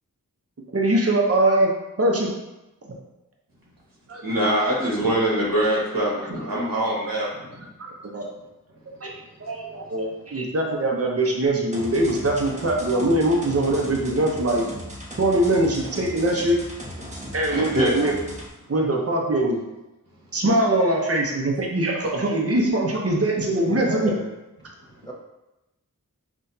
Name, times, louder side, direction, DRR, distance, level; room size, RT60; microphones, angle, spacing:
voice 1, 0.7-1.7 2.0-2.3 4.1-4.2 7.8-8.3 9.0-9.1 9.4-14.6 15.2-16.6 17.3-18.1 18.7-19.6 20.3-24.1, right 1 dB, 45° right, -1 dB, 0.8 m, -22 dB
voice 2, 4.2-7.5 17.5-17.9, right 1 dB, 85° right, -6 dB, 1.4 m, -23 dB
sound 1, 11.7-18.5, equal, 20° right, 1.0 m, -37 dB
voice 3, 23.6-24.3 25.0-25.1, right 1 dB, 10° left, -2 dB, 0.6 m, -31 dB
5.8 x 2.5 x 2.7 m, 0.99 s
wide cardioid pair, 40°, 34 cm